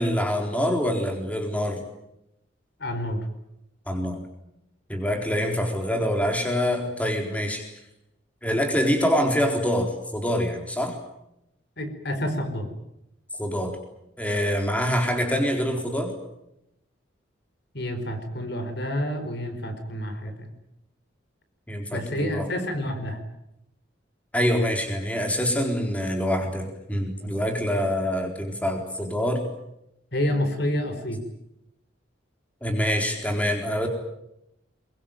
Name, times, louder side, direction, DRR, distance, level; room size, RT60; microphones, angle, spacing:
voice 1, 0.0-1.8 3.9-4.2 4.9-7.6 8.4-11.0 13.4-13.8 14.2-16.1 21.7-22.5 24.3-29.4 32.6-33.9, equal, 5° left, 3 dB, 4.0 m, -25 dB
voice 2, 2.8-3.3 11.8-12.7 17.7-20.5 21.9-23.2 30.1-31.2, left 1 dB, 60° left, 8 dB, 4.5 m, -28 dB
24.0 x 23.0 x 9.1 m, 0.83 s
head